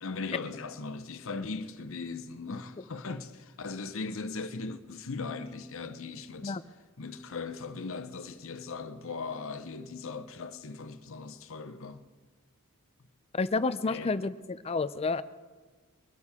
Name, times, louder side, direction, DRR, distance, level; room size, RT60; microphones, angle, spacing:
voice 1, 0.0-6.6 7.0-12.0 13.9-14.1, left 4 dB, 65° left, 0.8 m, -39 dB
voice 2, 13.3-15.2, left 3 dB, 30° left, 0.4 m, -30 dB
23.0 x 12.5 x 3.7 m
head